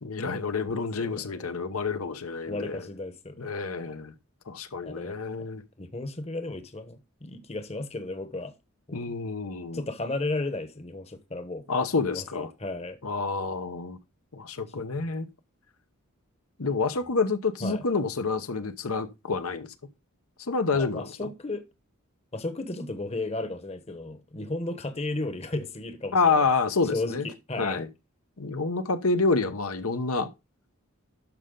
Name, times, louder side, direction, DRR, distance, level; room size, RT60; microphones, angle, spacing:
voice 1, 0.0-2.9 3.4-4.1 4.5-5.6 8.9-9.8 11.7-12.5 13.0-14.0 14.3-15.3 16.6-19.7 20.4-21.3 26.1-27.3 27.6-27.9 28.4-30.3, left 4 dB, 75° left, 0.9 m, -28 dB
voice 2, 1.0-1.5 2.5-3.6 4.9-5.2 5.8-8.5 8.9-9.1 9.7-11.7 12.1-13.0 17.6-17.8 20.7-21.6 22.3-26.5 26.9-27.8, left 2 dB, 30° left, 1.0 m, -34 dB
12.0 x 5.5 x 3.8 m
head